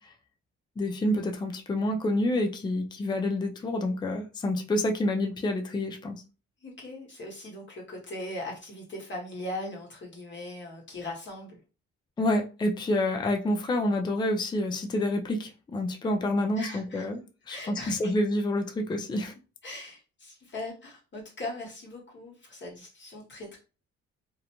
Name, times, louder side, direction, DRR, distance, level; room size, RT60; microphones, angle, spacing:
voice 1, 0.8-6.2 12.2-17.2 17.5-19.3, left 1 dB, 15° left, 0.4 m, -28 dB
voice 2, 6.6-11.6 16.6-17.1 17.5-18.1 19.6-23.6, left 1 dB, 40° left, 1.0 m, -39 dB
2.6 x 2.1 x 2.9 m
cardioid pair, 90°, 30 cm